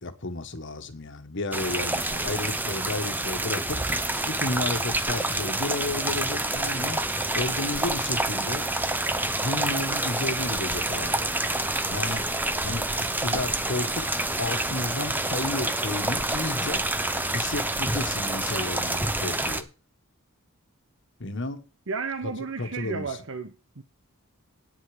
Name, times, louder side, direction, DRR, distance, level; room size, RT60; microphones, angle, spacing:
voice 1, 0.0-7.0 7.3-8.7 9.2-11.3 11.9-12.3 12.6-14.0 14.4-16.8 17.3-19.7 21.2-21.6 22.6-23.2, left 2 dB, 55° left, 1.5 m, -32 dB
sound 1, 1.5-19.6, right 2 dB, 10° right, 0.8 m, -28 dB
voice 2, 21.9-23.8, right 4 dB, 65° right, 1.1 m, -33 dB
10.5 x 9.6 x 5.0 m
head